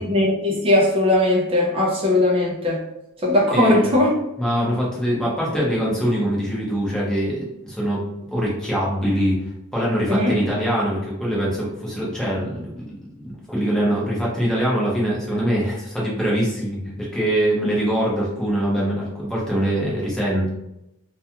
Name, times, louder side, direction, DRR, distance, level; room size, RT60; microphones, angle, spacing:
voice 1, 0.0-2.8 3.2-4.1 10.1-10.3, left 1 dB, 25° right, -3 dB, 0.5 m, -19 dB
voice 2, 3.5-3.9 4.4-8.0 8.3-9.4 9.7-20.5, equal, 5° left, -6 dB, 0.8 m, -23 dB
2.3 x 2.3 x 2.8 m, 0.85 s
head